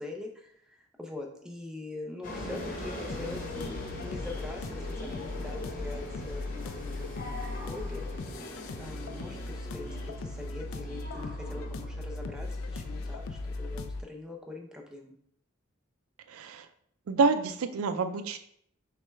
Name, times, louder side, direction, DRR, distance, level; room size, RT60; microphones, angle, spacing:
voice 1, 0.0-8.2 8.8-15.1, left 2 dB, 5° right, 1 dB, 0.5 m, -43 dB
sound 1, 2.2-13.9, left 1 dB, 40° left, 0.9 m, -41 dB
sound 2, 3.1-14.0, left 3 dB, 70° left, 0.3 m, -38 dB
voice 2, 16.3-16.7 17.1-18.4, right 4 dB, 80° right, 8 dB, 0.4 m, -27 dB
6.0 x 2.2 x 3.3 m, 0.67 s
head